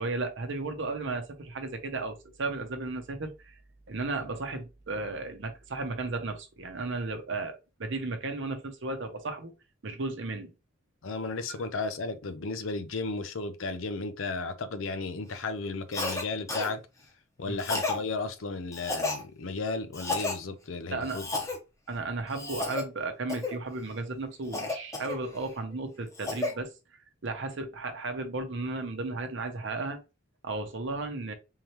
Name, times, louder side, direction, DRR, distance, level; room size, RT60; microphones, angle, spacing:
voice 1, 0.0-3.5 3.9-9.5 9.8-10.5 17.5-17.6 20.9-21.2 21.9-26.7 27.2-30.0 30.4-31.3, right 3 dB, 60° right, 0.8 m, -34 dB
voice 2, 11.0-16.8 17.4-21.2, left 3 dB, 70° left, 0.6 m, -34 dB
Cough, 15.9-16.2 16.5-16.7 17.6-18.0 18.7-19.2 19.9-20.4 21.1-21.6 22.3-22.8 23.3-23.6 24.5-25.5 25.9-26.5, left 3 dB, 15° left, 0.9 m, -32 dB
3.7 x 3.2 x 2.9 m
head